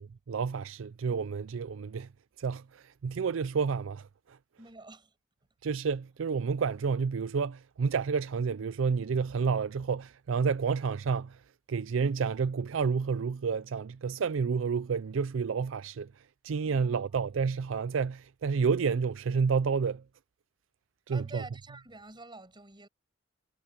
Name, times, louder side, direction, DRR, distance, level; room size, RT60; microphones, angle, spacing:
voice 1, 0.0-2.1 2.4-4.4 5.6-11.4 11.7-16.1 16.4-20.0 21.1-21.4, right 5 dB, 75° right, 0.4 m, -30 dB
voice 2, 4.6-5.1 16.7-17.3 21.1-22.9, right 2 dB, 25° right, 7.9 m, -48 dB
head